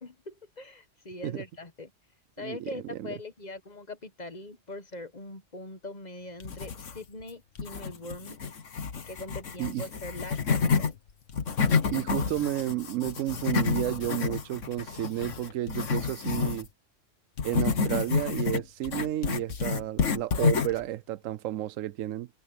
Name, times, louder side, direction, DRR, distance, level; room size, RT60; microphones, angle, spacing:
voice 1, 0.0-1.9 2.4-8.4 9.1-11.0, left 2 dB, 35° left, 1.2 m, -42 dB
voice 2, 2.4-3.1 9.6-9.8 11.9-16.7 17.4-22.3, right 14 dB, 90° right, 1.0 m, -32 dB
sound 1, 6.4-7.2 7.6-10.9 11.3-16.7 17.4-20.8, left 5 dB, 75° left, 1.7 m, -29 dB
omnidirectional pair, 1.3 m